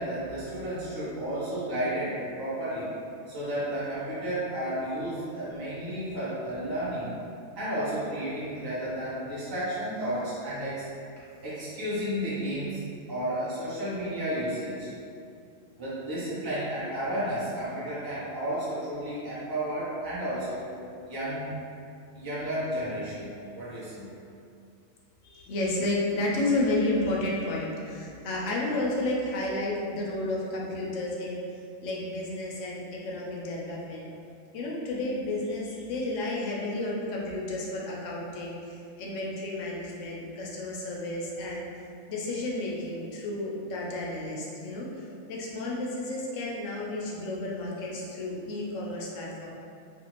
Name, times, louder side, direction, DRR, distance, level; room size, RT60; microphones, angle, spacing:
voice 1, 0.0-2.9 3.3-7.2 7.6-10.9 11.4-12.8 13.1-14.9 15.8-20.6 21.1-21.5 22.1-24.1, right 1 dB, 25° right, -11 dB, 0.5 m, -32 dB
voice 2, 25.2-31.4 31.8-34.1 34.5-41.7 42.1-45.0 45.3-49.5, left 2 dB, 70° left, -4 dB, 0.9 m, -31 dB
2.5 x 2.5 x 2.9 m, 2.5 s
omnidirectional pair, 1.4 m